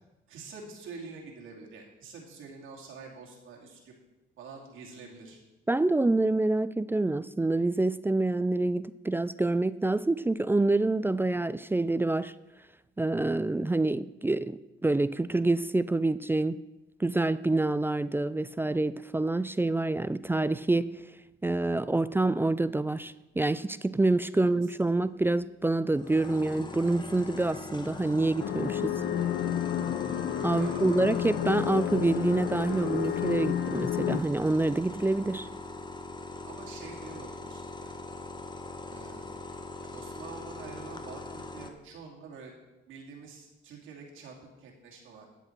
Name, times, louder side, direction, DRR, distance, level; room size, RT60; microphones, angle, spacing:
voice 1, 0.3-3.9 4.4-5.4 24.3-24.7 30.5-31.0 32.7-33.1 36.4-37.9 38.9-39.3 39.8-42.5 42.9-45.3, right 4 dB, 85° right, -1 dB, 2.6 m, -47 dB
voice 2, 5.7-12.3 13.0-16.6 17.0-20.9 21.4-28.9 30.4-35.5, right 2 dB, 10° right, 16 dB, 0.3 m, -27 dB
sound 1, 25.9-41.7, left 3 dB, 20° left, 1.1 m, -41 dB
sound 2, 28.4-34.2, left 10 dB, 70° left, 0.7 m, -31 dB
12.0 x 8.2 x 4.5 m, 1.0 s
cardioid pair, 90°, 20 cm